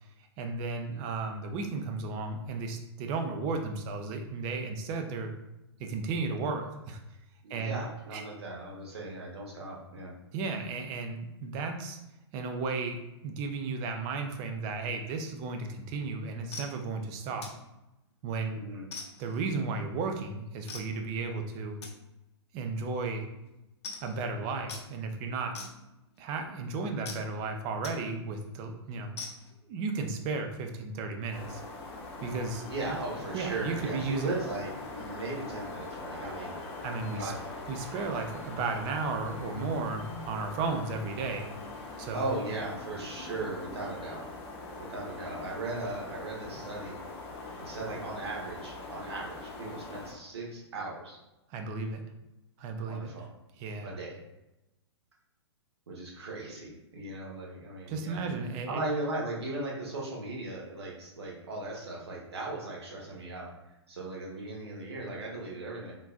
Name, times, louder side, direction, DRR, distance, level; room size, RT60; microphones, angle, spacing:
voice 1, 0.4-5.3 5.8-7.0 7.5-7.8 8.1-8.2 10.3-12.0 12.3-13.0 13.2-17.5 18.2-18.6 19.2-21.8 22.5-23.2 24.0-25.6 26.2-29.1 29.7-31.6 32.2-33.0 33.3-34.3 36.8-37.3 37.7-41.5 42.0-42.3 51.5-52.0 52.6-53.1 53.6-53.9 57.9-58.8, right 4 dB, 30° right, 5 dB, 0.4 m, -34 dB
voice 2, 7.4-10.1 18.5-18.8 32.6-37.6 42.1-44.3 44.7-47.0 47.6-51.2 52.9-53.3 53.8-54.2 55.9-58.2 58.7-63.5 63.9-66.0, right 2 dB, 70° right, -3 dB, 1.1 m, -37 dB
sound 1, 16.5-16.8 17.4-17.7 18.1-18.4 18.9-19.4 20.7-20.9 21.8-21.9 22.6-22.8 23.1-23.2 23.4-23.5 23.8-24.2 24.7-24.9 25.6-26.2 27.1-27.2 27.8-28.0 28.4-28.5 29.2-29.5, left 4 dB, 70° left, 0.7 m, -42 dB
sound 2, 31.3-50.1, left 3 dB, 30° left, 0.7 m, -42 dB
3.7 x 2.5 x 2.4 m, 0.94 s
figure-of-eight pair, 115°, 14 cm